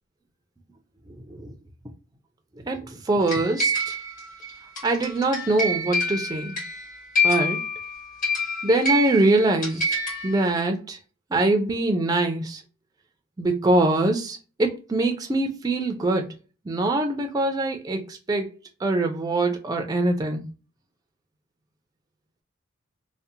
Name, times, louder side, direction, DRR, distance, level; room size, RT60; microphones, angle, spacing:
voice 1, 2.6-4.0 4.8-6.6 7.2-7.6 8.6-10.0 10.2-11.0 11.3-12.6 13.4-16.3 16.7-18.5 18.8-20.4, right 2 dB, 20° right, 0.3 m, -23 dB
sound 1, 3.3-10.5, left 1 dB, 40° left, 1.1 m, -27 dB
2.7 x 2.0 x 2.4 m
head